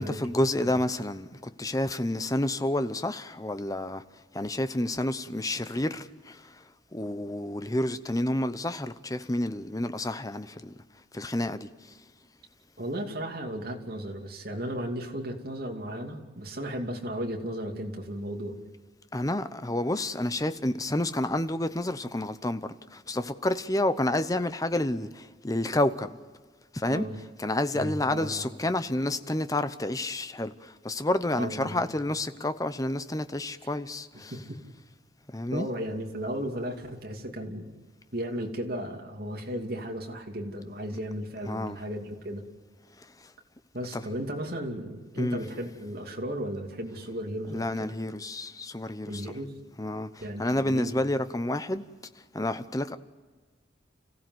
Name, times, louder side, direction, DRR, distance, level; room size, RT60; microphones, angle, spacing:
voice 1, 0.0-4.0 4.3-6.6 6.9-10.7 11.1-11.9 19.1-26.2 26.7-27.1 27.4-34.3 35.3-35.7 41.5-41.8 43.0-43.3 43.9-44.0 45.2-45.4 47.5-49.3 49.8-51.8 52.3-53.0, left 1 dB, 20° left, 0.8 m, -29 dB
voice 2, 12.8-18.6 26.9-27.1 27.7-28.5 31.4-31.8 34.1-34.6 35.5-37.7 38.1-42.4 43.7-47.9 49.1-49.6 50.2-50.9, equal, 55° right, 2.8 m, -35 dB
29.5 x 16.0 x 7.9 m
head